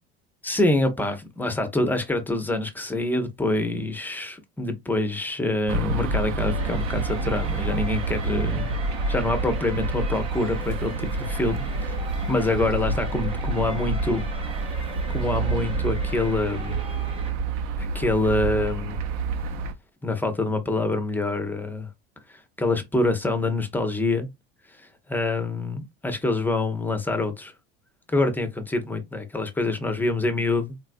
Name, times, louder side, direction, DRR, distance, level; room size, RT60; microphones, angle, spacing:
voice 1, 0.4-8.8 9.1-11.9 12.3-14.2 15.1-16.8 17.8-19.0 20.0-21.9 22.3-24.3 24.8-27.5 28.1-30.7, left 2 dB, 5° left, 0.5 m, -26 dB
sound 1, 5.7-19.7, right 3 dB, 60° right, 0.7 m, -28 dB
sound 2, 6.4-17.3, right 1 dB, 20° right, 0.9 m, -40 dB
3.9 x 2.3 x 2.5 m
supercardioid pair, 135°, 30 cm